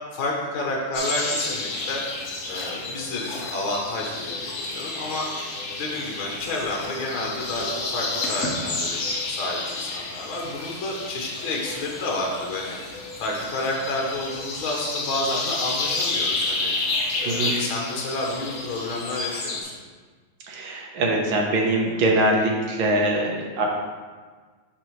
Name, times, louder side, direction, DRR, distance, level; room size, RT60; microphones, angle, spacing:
voice 1, 0.1-2.0 2.5-5.5 5.8-16.7 17.2-19.8, left 2 dB, 75° left, -1 dB, 1.7 m, -30 dB
sound 1, 0.9-19.6, left 2 dB, 50° left, 1.1 m, -30 dB
voice 2, 17.2-17.6 20.5-23.7, right 1 dB, 75° right, -1 dB, 1.8 m, -23 dB
10.5 x 4.3 x 3.1 m, 1.5 s
omnidirectional pair, 2.3 m